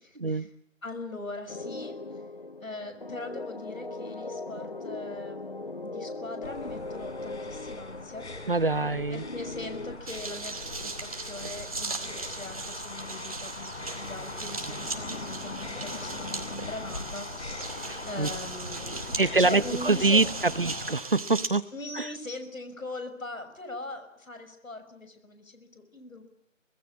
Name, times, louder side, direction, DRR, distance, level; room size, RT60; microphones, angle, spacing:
voice 1, 0.1-0.5 8.5-9.2 17.8-18.3 19.1-21.7 21.9-22.1, right 3 dB, 45° right, 17 dB, 1.1 m, -25 dB
voice 2, 0.8-2.0 2.6-8.3 9.1-20.3 21.7-26.3, left 2 dB, 85° left, 8 dB, 6.1 m, -41 dB
sound 1, 1.5-10.0, left 2 dB, 40° left, 0.9 m, -39 dB
sound 2, 6.4-20.9, left 3 dB, 55° left, 4.9 m, -41 dB
sound 3, 10.1-21.5, right 3 dB, 25° right, 2.5 m, -38 dB
25.5 x 21.5 x 8.4 m, 0.76 s
figure-of-eight pair, 175°, 39 cm